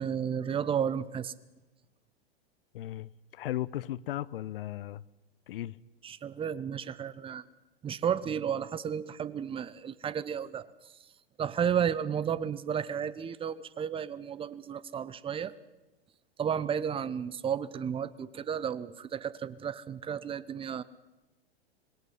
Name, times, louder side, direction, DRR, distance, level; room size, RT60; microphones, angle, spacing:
voice 1, 0.0-1.3 6.0-7.4 7.8-10.7 11.4-15.6 16.4-20.8, right 8 dB, 15° right, 0.9 m, -32 dB
voice 2, 2.7-5.0 5.5-5.8, left 14 dB, 60° left, 0.9 m, -36 dB
26.0 x 20.5 x 5.6 m
hypercardioid pair, 110°, 31 cm